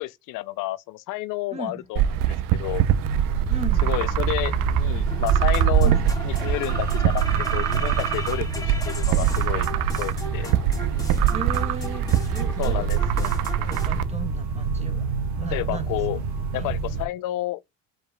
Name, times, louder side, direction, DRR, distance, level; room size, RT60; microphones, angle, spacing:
voice 1, 0.0-2.8 3.8-5.9 6.2-10.5 12.6-13.3 15.5-16.2 16.5-17.6, left 18 dB, 65° left, 0.5 m, -30 dB
voice 2, 1.5-1.8 3.5-3.9 5.8-6.0 11.3-15.1 15.4-16.2 16.5-16.7, right 5 dB, 20° right, 1.3 m, -36 dB
sound 1, 2.0-14.0, right 10 dB, 75° right, 0.6 m, -24 dB
sound 2, 2.6-17.1, right 3 dB, 55° right, 1.6 m, -29 dB
sound 3, 5.1-13.9, left 1 dB, 10° left, 2.7 m, -38 dB
4.9 x 4.8 x 2.2 m
supercardioid pair, 95°, 34 cm